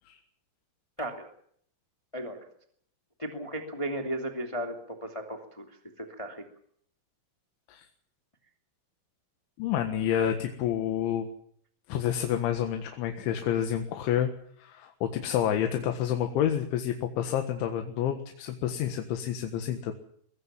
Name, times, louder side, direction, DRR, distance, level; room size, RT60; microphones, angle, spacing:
voice 1, 2.1-2.4 3.2-6.4, right 1 dB, 25° left, 3 dB, 0.6 m, -35 dB
voice 2, 9.6-11.3 11.9-14.3 14.6-19.9, left 10 dB, 70° left, 5 dB, 3.8 m, -29 dB
22.5 x 18.0 x 7.5 m, 0.65 s
omnidirectional pair, 5.8 m